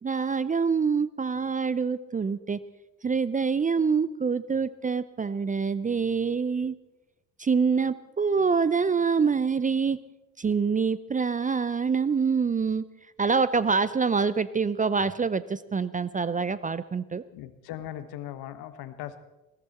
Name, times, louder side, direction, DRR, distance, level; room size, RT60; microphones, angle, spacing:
voice 1, 0.0-2.6 3.0-6.7 7.4-10.0 10.4-12.8 13.2-17.2, right 5 dB, 20° right, 17 dB, 0.6 m, -25 dB
voice 2, 17.3-19.2, left 12 dB, 60° left, 12 dB, 1.4 m, -39 dB
20.5 x 15.5 x 4.3 m, 0.99 s
hypercardioid pair, 55°, 42 cm